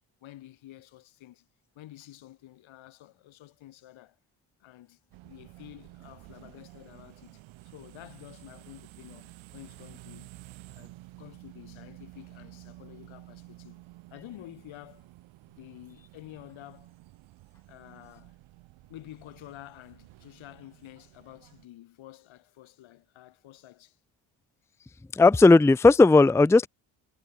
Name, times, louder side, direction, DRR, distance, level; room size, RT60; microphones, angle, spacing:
voice 1, 0.2-1.5 1.8-4.2 4.6-10.3 10.7-13.8 14.1-15.1 15.6-16.9 17.7-18.4 18.9-24.0, left 14 dB, 80° left, 2.2 m, -50 dB
sound 1, 5.1-21.7, right 19 dB, 90° right, 2.2 m, -51 dB
voice 2, 25.1-26.7, left 3 dB, 5° left, 0.5 m, -16 dB
supercardioid pair, 50°, 46 cm